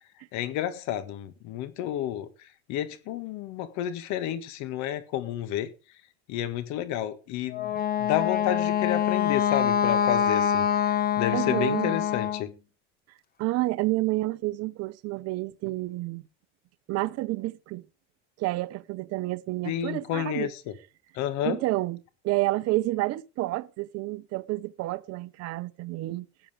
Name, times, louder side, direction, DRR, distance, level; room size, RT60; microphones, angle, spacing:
voice 1, 0.3-2.3 2.7-5.7 6.3-7.7 8.0-12.5 19.7-20.6 21.2-21.6, left 11 dB, 60° left, 1.8 m, -30 dB
Wind instrument woodwind instrument, 7.5-12.5, left 9 dB, 30° left, 1.4 m, -25 dB
voice 2, 11.3-12.0 13.4-16.2 16.9-17.8 18.4-20.5 21.4-26.3, right 19 dB, 50° right, 0.9 m, -29 dB
15.0 x 10.0 x 5.0 m
supercardioid pair, 120°, 32 cm